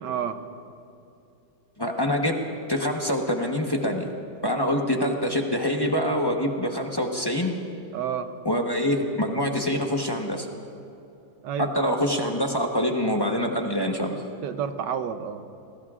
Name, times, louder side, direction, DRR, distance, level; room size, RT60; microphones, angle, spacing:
voice 1, 0.0-0.4 7.9-8.3 11.4-12.0 14.4-15.4, right 8 dB, 90° right, 9 dB, 1.5 m, -30 dB
voice 2, 1.8-2.3 2.7-4.1 4.4-7.6 8.4-10.5 11.6-14.2, equal, 20° left, 1 dB, 0.9 m, -25 dB
28.0 x 20.0 x 2.5 m, 2.7 s
omnidirectional pair, 1.8 m